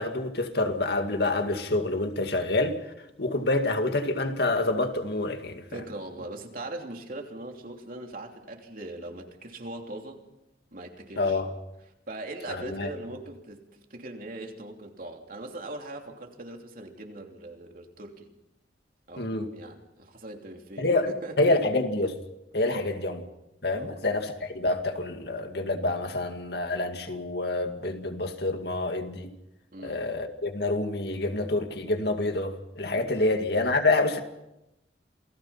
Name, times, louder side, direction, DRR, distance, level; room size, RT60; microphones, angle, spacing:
voice 1, 0.0-2.8 3.2-5.6 11.2-11.5 12.5-12.9 19.2-19.4 20.8-21.1 21.4-22.2 22.5-23.2 23.6-29.3 29.8-34.2, left 2 dB, 65° left, 2.2 m, -27 dB
voice 2, 5.7-10.2 10.7-11.4 12.1-18.3 19.1-21.4 22.7-22.9 23.7-24.0 29.7-30.0 33.2-33.4, right 2 dB, 50° right, 3.0 m, -40 dB
28.0 x 19.0 x 5.8 m
head